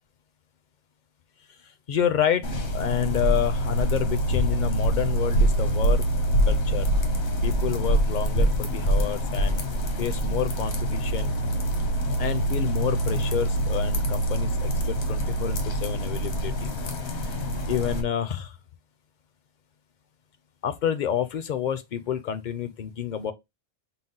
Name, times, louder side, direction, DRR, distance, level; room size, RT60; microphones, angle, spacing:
voice 1, 1.9-2.5 2.7-6.1 6.5-6.9 7.4-9.6 10.0-11.4 12.2-16.7 17.7-18.6 20.6-23.3, left 9 dB, 55° left, 0.5 m, -29 dB
sound 1, 2.4-18.0, right 1 dB, 85° left, 1.2 m, -25 dB
5.8 x 2.0 x 3.7 m
omnidirectional pair, 1.1 m